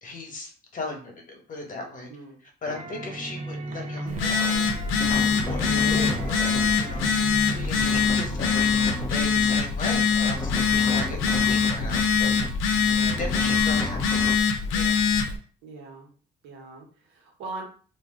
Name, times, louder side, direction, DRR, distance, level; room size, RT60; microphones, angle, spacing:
voice 1, 0.0-2.1 2.4-4.6 5.1-7.1 7.5-14.4 14.7-15.0, left 2 dB, 40° left, 2 dB, 1.2 m, -37 dB
sound 1, 2.6-11.6, right 2 dB, 40° right, 0.5 m, -38 dB
Telephone, 4.1-15.4, left 6 dB, 85° left, 0.6 m, -23 dB
sound 2, 5.0-14.3, left 1 dB, 15° left, 0.5 m, -35 dB
voice 2, 12.9-13.2 15.6-16.1 16.4-17.6, right 3 dB, 80° right, 0 dB, 1.2 m, -41 dB
2.6 x 2.3 x 3.7 m, 0.42 s
supercardioid pair, 80°, 20 cm